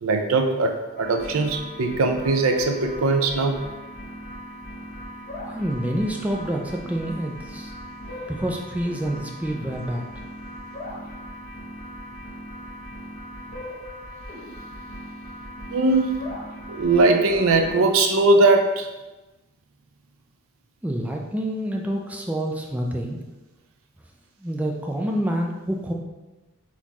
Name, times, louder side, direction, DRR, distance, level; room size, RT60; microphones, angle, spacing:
voice 1, 0.0-3.6 15.7-16.2 16.7-18.9, right 3 dB, 70° right, 5 dB, 0.5 m, -20 dB
sound 1, 1.0-17.8, equal, 40° left, 1.1 m, -38 dB
voice 2, 5.5-7.7 8.3-10.0 20.8-23.2 24.4-25.9, equal, 5° right, 0 dB, 0.3 m, -27 dB
4.2 x 3.0 x 4.0 m, 1.1 s
head